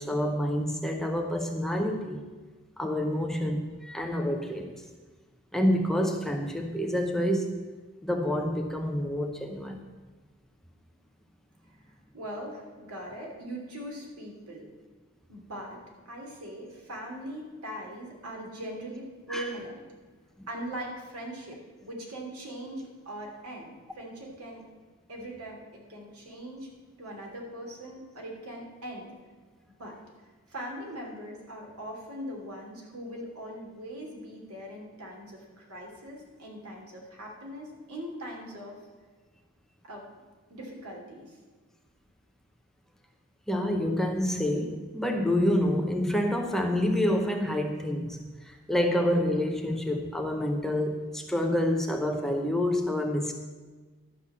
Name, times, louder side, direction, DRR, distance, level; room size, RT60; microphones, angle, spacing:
voice 1, 0.0-2.3 2.8-4.7 5.5-7.6 8.0-9.8 19.3-19.5 43.5-53.3, left 1 dB, ahead, 3 dB, 0.6 m, -28 dB
voice 2, 12.1-14.7 15.3-15.8 16.0-19.8 20.5-24.6 25.1-26.7 27.0-29.1 29.8-30.0 30.5-38.8 39.8-40.1 40.5-41.4, right 1 dB, 85° right, 0 dB, 2.8 m, -41 dB
12.0 x 5.8 x 7.3 m, 1.4 s
head